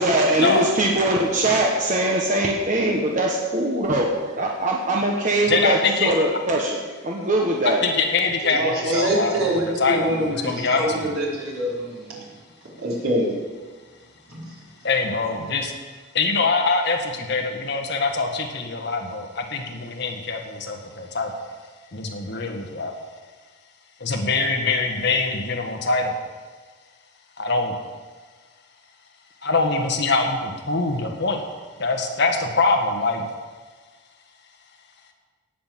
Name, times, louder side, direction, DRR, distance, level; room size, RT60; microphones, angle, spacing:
voice 1, 0.0-7.8, right 1 dB, 35° right, -1 dB, 1.3 m, -22 dB
voice 2, 5.5-6.1 7.8-11.1 14.8-15.7 16.1-21.3 21.9-22.9 24.0-26.1 27.4-27.7 29.4-31.4 31.8-33.2, left 3 dB, 50° left, 3 dB, 1.6 m, -23 dB
voice 3, 8.4-12.2 12.8-13.3 14.3-14.4, right 1 dB, 80° right, -5 dB, 4.5 m, -25 dB
18.0 x 6.0 x 7.6 m, 1.4 s
head